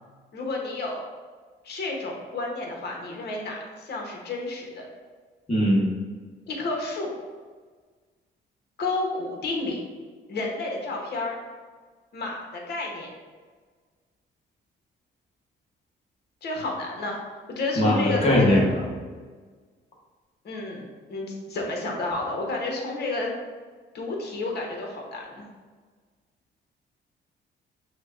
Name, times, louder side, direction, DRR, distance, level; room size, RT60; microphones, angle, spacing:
voice 1, 0.3-1.0 1.6-4.8 6.5-7.1 8.8-9.8 10.3-11.4 12.1-13.1 16.4-17.2 17.5-18.6 20.4-23.3 23.9-25.4, left 2 dB, 55° left, -1 dB, 1.0 m, -31 dB
voice 2, 5.5-5.9 17.8-18.8, equal, 30° left, -3 dB, 1.3 m, -20 dB
6.2 x 2.2 x 2.5 m, 1.5 s
cardioid pair, 90°, 20 cm